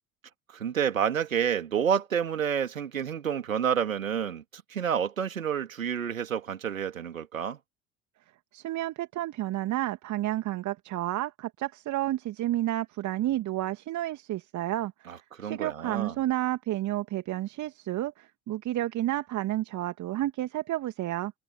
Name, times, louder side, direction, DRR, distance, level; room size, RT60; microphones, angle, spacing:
voice 1, 0.5-7.6 15.1-16.1, right 8 dB, 80° right, 3.4 m, -29 dB
voice 2, 8.5-21.3, right 14 dB, 45° right, 2.6 m, -31 dB
open air
figure-of-eight pair, 65°, 40 cm